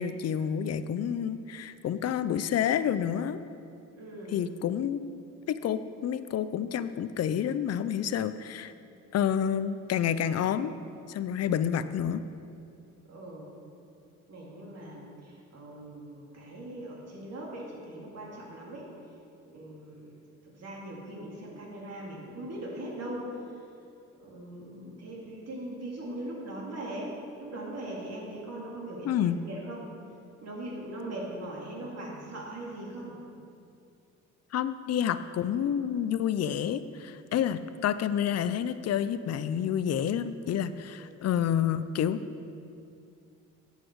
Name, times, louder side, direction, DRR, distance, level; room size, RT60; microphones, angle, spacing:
voice 1, 0.0-3.4 4.3-5.0 5.5-8.7 9.1-10.7 11.1-12.2 29.1-29.4 34.5-42.2, left 9 dB, 55° left, 13 dB, 0.6 m, -29 dB
voice 2, 3.9-4.4 13.1-13.5 14.3-18.9 19.5-20.1 20.5-23.3 24.1-29.9 30.4-33.2 37.5-37.6 41.0-41.1, right 1 dB, 55° right, -3 dB, 2.8 m, -40 dB
11.0 x 8.3 x 4.8 m, 2.5 s
cardioid pair, 90°, 30 cm